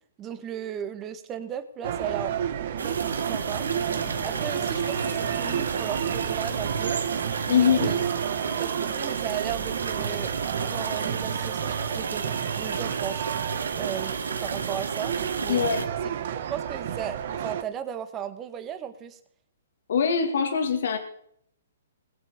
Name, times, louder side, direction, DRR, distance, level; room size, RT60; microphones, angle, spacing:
voice 1, 0.2-2.3 2.8-3.7 4.2-7.0 7.5-8.0 8.6-10.3 10.6-13.2 13.8-15.6 16.5-19.2, right 9 dB, 20° right, 9 dB, 1.6 m, -36 dB
sound 1, 1.8-17.6, right 9 dB, 55° right, 1.4 m, -31 dB
sound 2, 2.7-8.6, left 9 dB, 40° left, 1.8 m, -46 dB
sound 3, 2.8-15.9, right 5 dB, 90° right, 1.5 m, -33 dB
voice 2, 7.5-7.9 15.5-15.8 19.9-21.0, left 7 dB, 65° left, 6 dB, 2.2 m, -23 dB
21.0 x 7.4 x 5.3 m, 0.66 s
hypercardioid pair, 145°, 0 cm